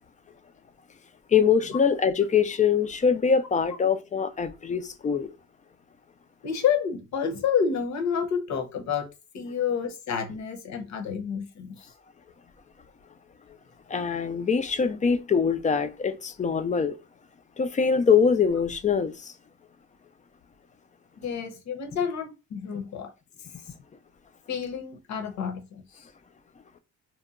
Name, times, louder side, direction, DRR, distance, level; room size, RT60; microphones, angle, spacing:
voice 1, 1.3-5.3 13.9-16.9 17.6-19.3, left 6 dB, 25° left, 0.3 m, -23 dB
voice 2, 6.4-9.1 9.3-11.9 21.2-23.1 24.5-26.0, left 7 dB, 65° left, 0.8 m, -29 dB
2.8 x 2.1 x 2.4 m
cardioid pair, 90°, 30 cm